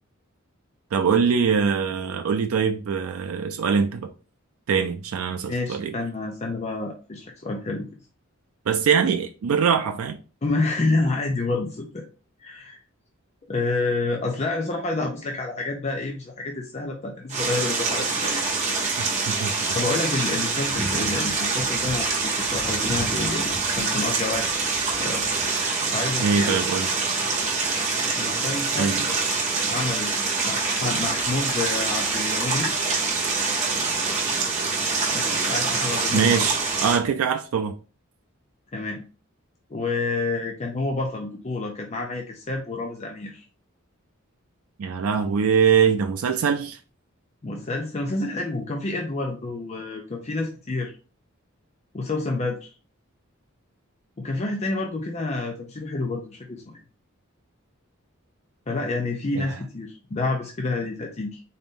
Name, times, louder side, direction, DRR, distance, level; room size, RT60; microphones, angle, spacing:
voice 1, 0.9-4.1 4.7-6.0 8.7-10.2 19.0-19.5 26.2-26.9 28.8-29.0 36.1-37.8 44.8-46.8 59.4-59.5, right 6 dB, 90° right, 0.4 m, -23 dB
voice 2, 5.4-7.8 10.4-12.0 12.4-12.8 13.5-18.3 19.7-24.7 25.0-25.3 25.9-26.6 28.2-29.1 29.7-30.1 30.4-32.7 35.1-36.3 38.7-39.0 39.7-43.4 47.4-50.9 51.9-52.7 54.2-56.8 58.7-61.4, left 3 dB, 30° left, 0.5 m, -28 dB
sound 1, 17.3-37.0, right 4 dB, 35° right, 1.0 m, -25 dB
4.0 x 2.6 x 3.6 m
head